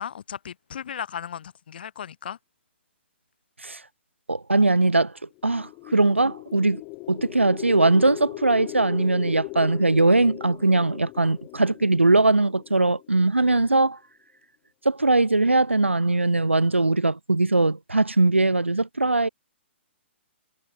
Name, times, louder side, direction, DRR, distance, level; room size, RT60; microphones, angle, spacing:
voice 1, 0.0-2.4, left 8 dB, 50° left, 6.4 m, -36 dB
voice 2, 4.3-6.8 7.1-14.0 14.9-19.3, right 2 dB, 80° right, 1.8 m, -21 dB
sound 1, 5.3-13.5, left 33 dB, 25° left, 1.3 m, -39 dB
figure-of-eight pair, 120°, 6 cm